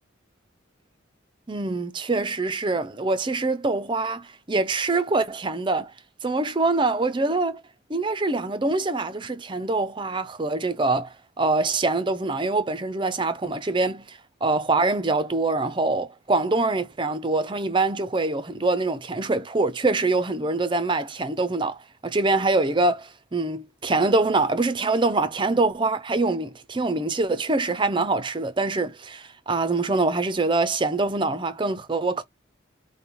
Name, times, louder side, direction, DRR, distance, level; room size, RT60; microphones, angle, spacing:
voice 1, 1.5-5.9 6.2-7.6 7.9-32.2, right 3 dB, 25° right, 0.5 m, -24 dB
5.1 x 2.2 x 3.0 m
head